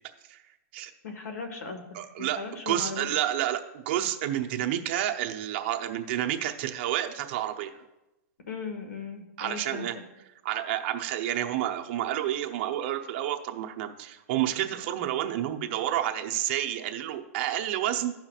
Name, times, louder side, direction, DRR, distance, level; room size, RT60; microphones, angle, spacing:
voice 1, 1.0-1.8 2.2-3.1 8.5-9.9, left 4 dB, 80° left, 5 dB, 1.8 m, -37 dB
voice 2, 1.9-2.4 2.7-7.7 9.4-9.9 10.4-18.1, right 12 dB, 40° right, 4 dB, 0.7 m, -29 dB
15.5 x 5.9 x 2.4 m, 0.98 s
hypercardioid pair, 165°, 9 cm